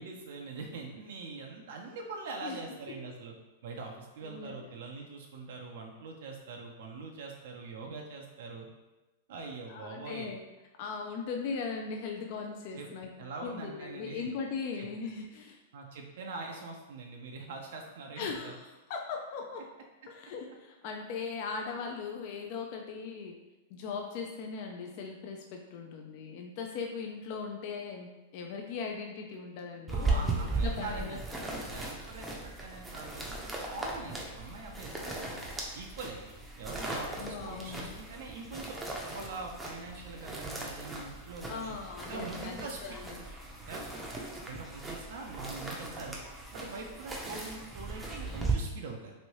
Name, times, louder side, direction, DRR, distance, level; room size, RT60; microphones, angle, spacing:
voice 1, 0.0-3.3 3.6-8.7 9.3-10.3 12.7-12.9 13.2-14.3 14.8-14.9 15.7-18.5 29.9-31.4 31.7-35.5 35.8-36.2 36.6-38.8 39.1-41.8 42.1-43.3 43.6-43.8 44.1-44.2 44.5-46.2 46.5-49.1, right 3 dB, 70° right, 1 dB, 0.4 m, -43 dB
voice 2, 4.2-4.7 9.7-10.4 10.8-13.1 13.4-15.6 18.2-19.7 20.1-23.4 23.7-31.5 37.2-37.9 41.5-43.2, left 5 dB, 50° left, 2 dB, 0.3 m, -39 dB
sound 1, 29.9-48.5, right 2 dB, 10° right, 0.5 m, -38 dB
3.1 x 2.6 x 2.9 m, 1.1 s
hypercardioid pair, 130°, 0 cm